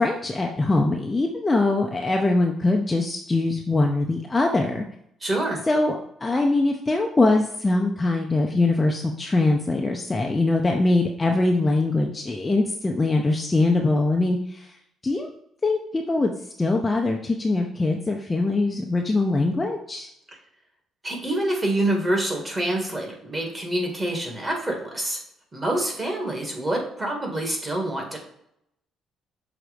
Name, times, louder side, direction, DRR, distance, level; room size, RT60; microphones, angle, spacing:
voice 1, 0.0-4.8 5.7-14.4 15.0-15.3 15.6-16.3 16.6-20.1, left 2 dB, 15° left, 1 dB, 0.6 m, -22 dB
voice 2, 5.2-5.6 21.0-25.2 25.5-28.2, right 1 dB, 20° right, 1 dB, 1.8 m, -26 dB
6.2 x 4.0 x 5.0 m, 0.74 s
cardioid pair, 145°, 0 cm